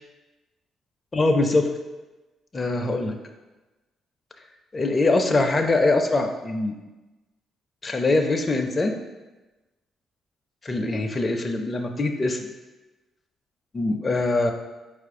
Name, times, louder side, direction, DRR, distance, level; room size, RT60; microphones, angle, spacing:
voice 1, 1.1-1.7 2.5-3.1 4.7-6.8 7.8-9.0 10.6-12.5 13.7-14.5, left 2 dB, 30° left, 4 dB, 0.4 m, -23 dB
4.6 x 2.5 x 4.6 m, 1.1 s
cardioid pair, 90°, 0 cm